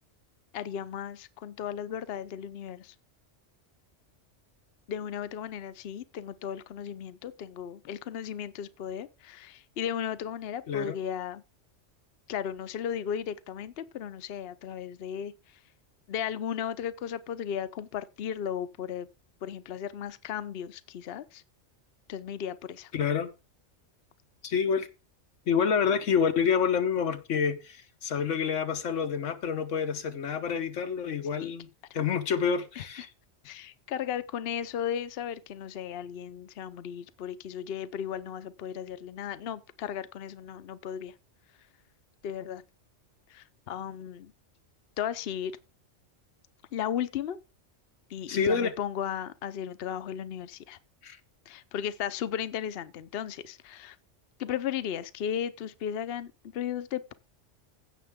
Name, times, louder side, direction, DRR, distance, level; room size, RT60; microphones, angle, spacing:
voice 1, 0.5-2.9 4.9-11.4 12.3-15.6 16.1-19.1 19.4-21.4 22.1-22.9 31.4-31.5 32.8-33.1 33.4-41.1 42.2-42.6 43.3-44.3 45.0-45.6 46.7-47.4 48.1-50.8 51.5-54.0 54.4-57.1, left 9 dB, 60° left, 0.9 m, -35 dB
voice 2, 22.9-23.3 24.4-24.9 25.5-31.7 31.9-33.1 48.3-48.7 51.0-51.2, left 6 dB, 90° left, 1.4 m, -28 dB
15.5 x 6.7 x 3.6 m
omnidirectional pair, 1.2 m